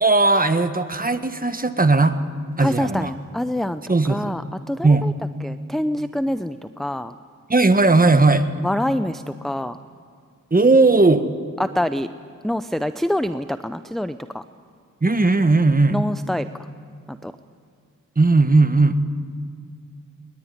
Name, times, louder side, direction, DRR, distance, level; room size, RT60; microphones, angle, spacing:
voice 1, 0.0-2.1 2.6-3.1 3.9-4.4 4.8-5.1 7.5-8.5 10.5-11.2 15.0-16.0 18.2-19.0, right 3 dB, 25° right, 9 dB, 1.5 m, -17 dB
voice 2, 2.6-3.8 4.1-4.4 4.7-5.1 5.4-7.1 8.6-9.8 11.6-12.1 12.4-14.4 15.9-16.5 17.1-17.3, left 1 dB, ahead, 10 dB, 0.6 m, -25 dB
21.5 x 21.0 x 9.7 m, 2.1 s
cardioid pair, 50°, 34 cm